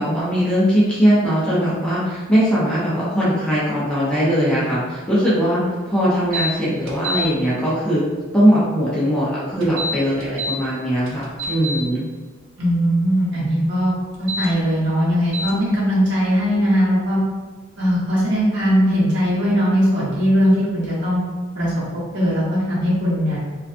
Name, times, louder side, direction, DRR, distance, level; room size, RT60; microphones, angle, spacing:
voice 1, 0.0-8.0 8.3-12.1, equal, 5° left, -9 dB, 0.5 m, -20 dB
sound 1, 6.3-6.5 6.9-7.3 9.6-10.6 11.1-11.8 14.1-14.5 15.3-15.5, equal, 75° right, 0.5 m, -26 dB
voice 2, 12.6-13.9 14.2-17.2 17.8-21.2 21.5-21.7 22.1-23.4, equal, 55° right, -8 dB, 0.9 m, -19 dB
2.4 x 2.3 x 2.4 m, 1.3 s
head